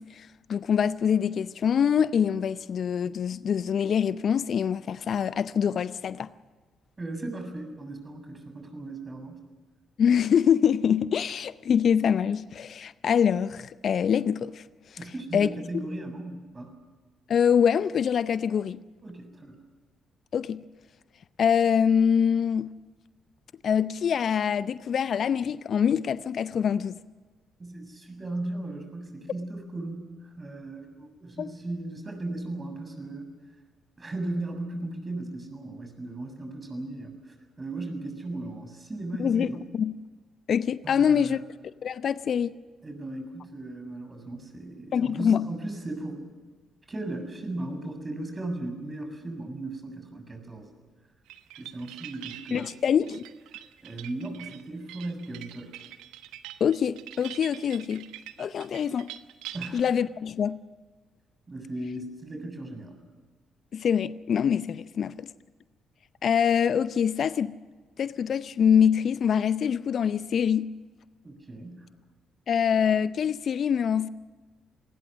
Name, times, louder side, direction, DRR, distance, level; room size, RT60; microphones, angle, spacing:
voice 1, 0.0-6.3 10.0-14.6 15.3-15.5 17.3-18.8 20.3-20.6 21.4-22.7 23.6-27.0 31.4-31.5 39.2-39.5 39.7-39.9 40.5-41.4 41.8-42.5 44.9-45.5 52.5-53.2 56.6-58.1 58.4-59.1 59.7-60.6 63.7-65.3 66.2-67.5 68.0-70.7 72.5-74.1, left 7 dB, 55° left, 0.6 m, -24 dB
voice 2, 7.0-9.4 15.0-16.7 19.0-19.6 27.6-33.3 34.0-39.7 40.8-41.4 42.8-46.3 46.9-50.7 51.6-52.7 53.8-55.7 59.5-59.8 61.5-63.1 71.2-71.9, right 2 dB, 30° right, 7.2 m, -37 dB
sound 1, 51.3-59.8, right 13 dB, 75° right, 1.1 m, -44 dB
27.0 x 20.5 x 6.4 m
hypercardioid pair, 45°, 0 cm